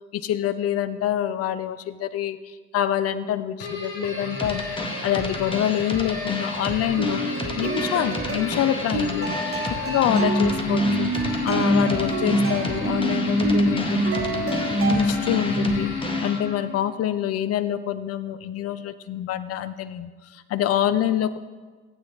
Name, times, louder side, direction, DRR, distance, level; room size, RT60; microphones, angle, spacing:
voice 1, 0.1-11.1 11.4-14.4 14.9-15.9 16.2-21.4, left 11 dB, 45° left, 14 dB, 0.7 m, -26 dB
sound 1, 3.6-16.8, left 1 dB, 65° left, 2.5 m, -27 dB
sound 2, 4.4-16.4, left 1 dB, 15° left, 1.5 m, -33 dB
sound 3, 6.9-15.5, right 2 dB, 40° right, 2.1 m, -29 dB
16.0 x 8.9 x 3.5 m, 1.4 s
figure-of-eight pair, 55°, 35 cm